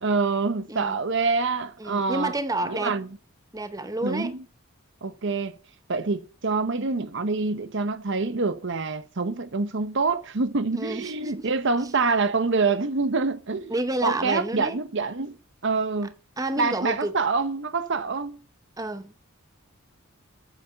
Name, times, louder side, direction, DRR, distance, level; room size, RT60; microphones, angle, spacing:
voice 1, 0.0-2.3 2.7-3.1 4.0-4.4 5.0-5.6 5.9-13.7 14.0-15.4 15.6-16.1 16.6-18.4, right 4 dB, 60° right, 0.9 m, -26 dB
voice 2, 1.8-3.0 3.5-4.3 10.7-11.5 13.7-14.8 16.4-17.1 18.8-19.2, right 2 dB, 15° right, 0.7 m, -29 dB
9.0 x 7.0 x 6.6 m
head